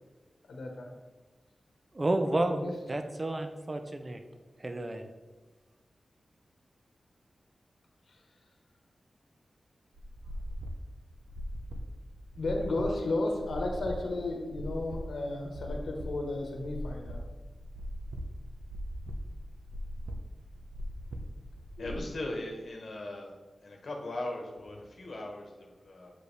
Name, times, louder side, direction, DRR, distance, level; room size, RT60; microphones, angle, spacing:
voice 1, 0.5-0.9 2.5-2.7 12.4-17.2 21.8-22.1, left 2 dB, 85° left, 1 dB, 1.1 m, -33 dB
voice 2, 1.9-2.6 2.9-4.2 4.6-5.1, right 2 dB, 30° right, 7 dB, 0.5 m, -31 dB
sound 1, 9.9-22.0, equal, 75° right, 0.9 m, -40 dB
voice 3, 21.8-23.3 23.6-26.1, left 1 dB, 65° left, 1 dB, 1.1 m, -39 dB
7.9 x 5.1 x 3.3 m, 1.3 s
wide cardioid pair, 100°, 0 cm